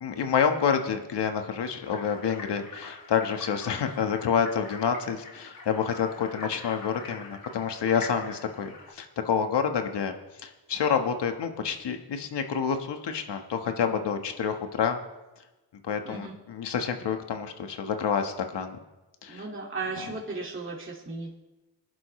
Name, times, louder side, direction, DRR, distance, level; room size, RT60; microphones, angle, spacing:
voice 1, 0.0-10.1 10.4-15.0 15.8-18.8 19.2-19.4, left 7 dB, 75° left, 5 dB, 1.5 m, -28 dB
sound 1, 1.8-8.9, left 3 dB, 50° left, 3.2 m, -44 dB
voice 2, 19.3-21.3, right 3 dB, 30° right, -4 dB, 2.4 m, -35 dB
20.5 x 11.0 x 3.2 m, 1.1 s
cardioid pair, 65°, 42 cm